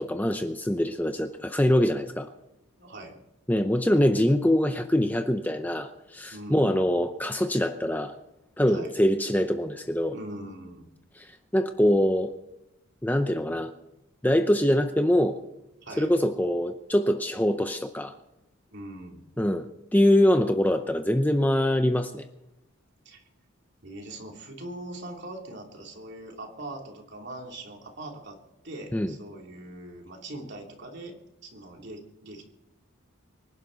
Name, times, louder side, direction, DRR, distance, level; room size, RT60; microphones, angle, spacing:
voice 1, 0.0-2.3 3.5-8.1 8.6-10.1 11.2-12.3 13.0-13.7 14.2-15.4 16.0-18.1 19.4-19.7 19.9-22.3 28.9-29.1, left 1 dB, 10° left, 7 dB, 0.6 m, -24 dB
voice 2, 2.8-3.2 6.3-6.9 8.7-8.9 10.1-10.9 15.8-16.1 18.7-19.2 23.0-23.2 23.8-28.4 28.6-32.4, right 1 dB, 50° right, 1 dB, 3.0 m, -41 dB
25.0 x 11.5 x 4.1 m, 0.90 s
head